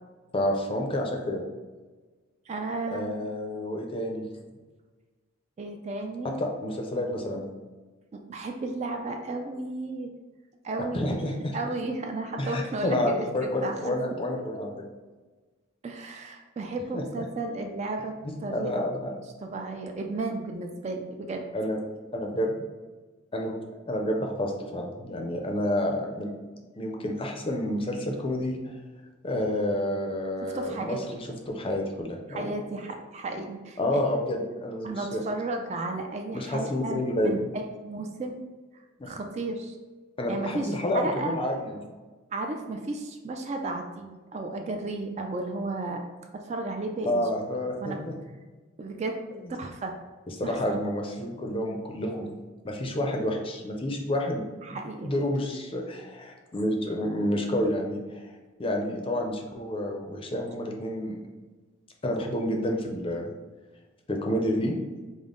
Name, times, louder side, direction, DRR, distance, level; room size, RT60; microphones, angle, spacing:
voice 1, 0.3-1.4 2.9-4.3 6.4-7.4 10.9-11.6 12.4-14.9 16.9-17.0 18.2-19.1 21.5-21.8 22.1-22.6 23.3-23.6 23.9-26.3 26.7-28.8 29.2-32.5 33.8-35.2 36.3-37.4 39.0-39.1 40.2-41.9 47.0-48.1 49.3-49.5 50.3-52.3 52.6-54.4 54.7-58.3 58.6-61.2 62.0-63.3 64.1-64.8, left 1 dB, 25° left, 2 dB, 0.5 m, -29 dB
voice 2, 2.5-3.2 5.6-6.4 8.1-10.1 10.6-11.2 11.5-13.9 15.8-18.1 18.4-18.8 19.4-21.5 30.4-31.0 32.3-34.1 34.8-38.4 39.1-39.8 40.3-41.4 42.3-46.0 46.3-47.2 47.8-48.0 48.8-49.2 49.5-49.9 50.4-50.8 54.6-55.1, right 2 dB, 30° right, 4 dB, 0.3 m, -33 dB
5.2 x 2.0 x 3.7 m, 1.3 s
head